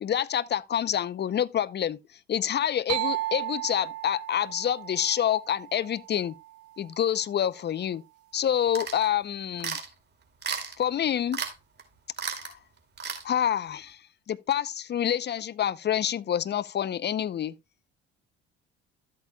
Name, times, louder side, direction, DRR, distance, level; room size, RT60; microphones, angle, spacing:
voice 1, 0.0-2.0 2.3-6.3 6.8-8.0 8.3-9.8 10.8-11.4 12.3-12.5 13.2-14.0 14.3-17.5, left 10 dB, 35° left, 0.7 m, -27 dB
sound 1, 2.9-6.6, right 16 dB, 55° right, 0.5 m, -35 dB
sound 2, 8.7-9.1 9.6-9.9 10.4-10.8 11.3-11.5 11.8-11.9 12.2-12.5 13.0-13.2, right 6 dB, 35° right, 2.6 m, -33 dB
12.5 x 8.4 x 2.3 m
supercardioid pair, 70°, 29 cm